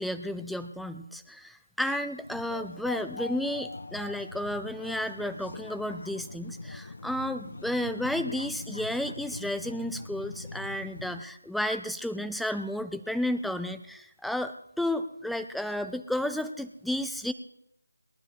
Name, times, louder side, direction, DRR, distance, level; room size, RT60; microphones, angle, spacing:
voice 1, 0.0-17.3, left 1 dB, ahead, 10 dB, 0.4 m, -32 dB
sound 1, 2.2-11.2, left 2 dB, 60° left, 0.9 m, -42 dB
21.5 x 12.0 x 3.5 m, 0.76 s
figure-of-eight pair, 160°, 0 cm